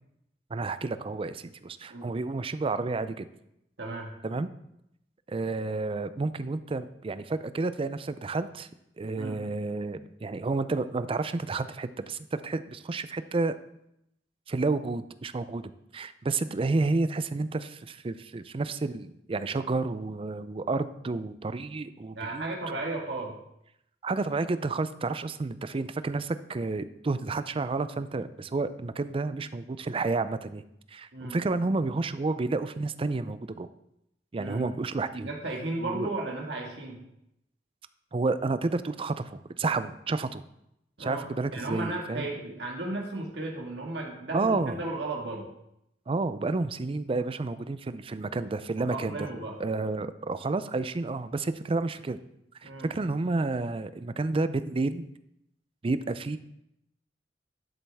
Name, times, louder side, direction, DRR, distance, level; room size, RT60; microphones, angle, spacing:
voice 1, 0.5-3.3 4.2-4.5 5.3-8.7 9.0-13.6 14.5-15.6 15.9-22.5 24.0-30.6 30.9-33.7 34.3-35.3 35.8-36.1 38.1-40.4 41.0-42.3 44.3-44.8 46.1-49.3 49.6-52.2 52.6-55.0 55.8-56.4, right 3 dB, 30° right, 13 dB, 0.4 m, -30 dB
voice 2, 3.8-4.1 9.1-9.4 22.2-23.3 31.1-31.4 34.4-34.6 35.2-37.0 41.0-45.5 48.8-49.5 52.6-52.9, right 2 dB, 80° right, -1 dB, 1.7 m, -35 dB
12.0 x 7.2 x 3.5 m, 0.80 s
head